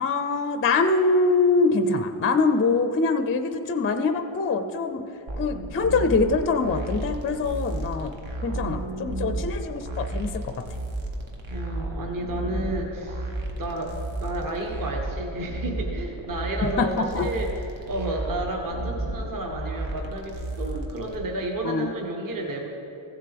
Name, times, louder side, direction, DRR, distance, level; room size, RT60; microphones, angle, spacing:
voice 1, 0.0-5.0 5.4-8.1 8.4-10.5 16.8-16.9 17.1-17.3 21.6-21.9, left 3 dB, 30° left, 8 dB, 0.4 m, -24 dB
sound 1, 5.3-21.2, right 2 dB, 75° right, 1.3 m, -33 dB
voice 2, 8.5-9.5 11.5-17.6 17.9-22.7, right 1 dB, 45° right, 1 dB, 1.1 m, -32 dB
15.0 x 7.6 x 3.4 m, 2.8 s
wide cardioid pair, 140°, 48 cm